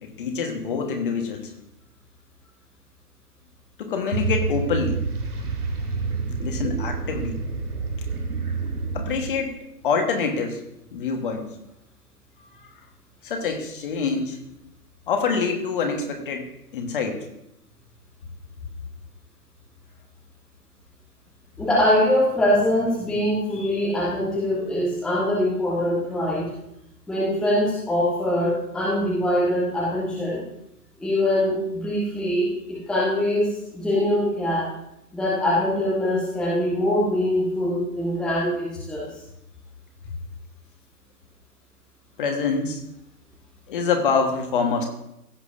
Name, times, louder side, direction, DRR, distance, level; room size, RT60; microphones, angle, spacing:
voice 1, 0.0-1.5 3.8-5.0 6.4-7.4 8.9-9.6 9.8-10.6 10.9-11.5 12.4-12.7 13.2-14.5 15.1-16.5 16.7-17.2 42.2-42.8 43.7-44.9, left 5 dB, 35° left, 4 dB, 1.4 m, -25 dB
sound 1, 4.1-9.5, right 4 dB, 65° right, 2.1 m, -28 dB
voice 2, 21.6-26.5 27.1-30.4 31.0-34.7 35.1-39.1, left 1 dB, ahead, -7 dB, 1.0 m, -23 dB
16.0 x 7.9 x 2.6 m, 0.82 s
figure-of-eight pair, 130°, 48 cm